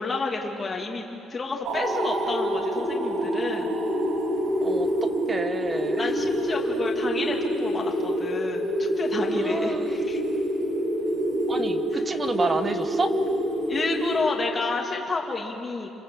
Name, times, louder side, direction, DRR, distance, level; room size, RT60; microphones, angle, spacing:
voice 1, 0.0-3.8 6.0-10.2 11.9-12.0 13.7-15.9, left 3 dB, 20° left, 0 dB, 2.5 m, -30 dB
sound 1, 1.7-14.9, equal, 60° right, 5.4 m, -27 dB
voice 2, 4.6-6.1 9.3-10.0 11.5-13.1, right 3 dB, 20° right, 9 dB, 1.1 m, -29 dB
28.5 x 27.0 x 7.8 m, 2.7 s
cardioid pair, 165°, 0 cm